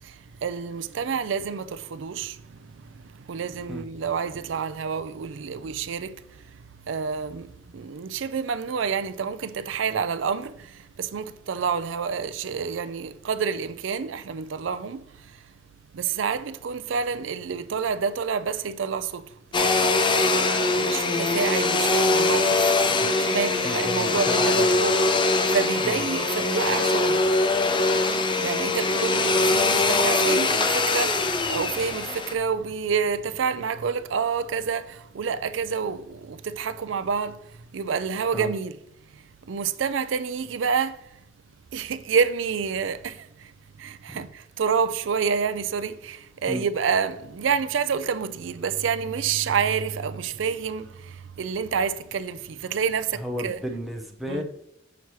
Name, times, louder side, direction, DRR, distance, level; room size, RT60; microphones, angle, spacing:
voice 1, 0.0-2.4 2.7-6.2 6.9-15.0 15.9-19.3 20.3-22.7 23.2-24.9 25.2-27.3 28.4-37.4 37.7-38.8 39.5-41.0 41.7-43.5 43.8-53.6 54.3-54.4, right 6 dB, 85° right, 0.4 m, -28 dB
Domestic sounds home sounds, 19.5-32.3, left 3 dB, 25° left, 0.5 m, -22 dB
voice 2, 22.9-24.8 25.8-26.0 38.3-38.5 44.1-44.3 46.5-46.7 53.2-54.4, equal, ahead, 0.8 m, -33 dB
6.9 x 5.9 x 3.1 m
head